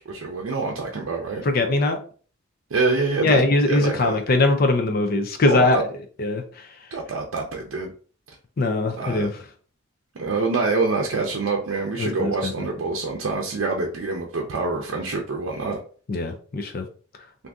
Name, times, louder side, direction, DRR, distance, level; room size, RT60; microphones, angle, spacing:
voice 1, 0.1-1.4 2.7-4.2 5.5-5.8 6.9-7.9 9.0-9.3 10.2-15.8, right 3 dB, 70° right, 0 dB, 0.5 m, -26 dB
voice 2, 1.4-2.0 3.2-5.8 6.2-6.4 8.6-9.3 12.0-12.5 16.1-16.9, left 2 dB, 45° left, 5 dB, 0.5 m, -21 dB
2.6 x 2.6 x 3.4 m, 0.42 s
head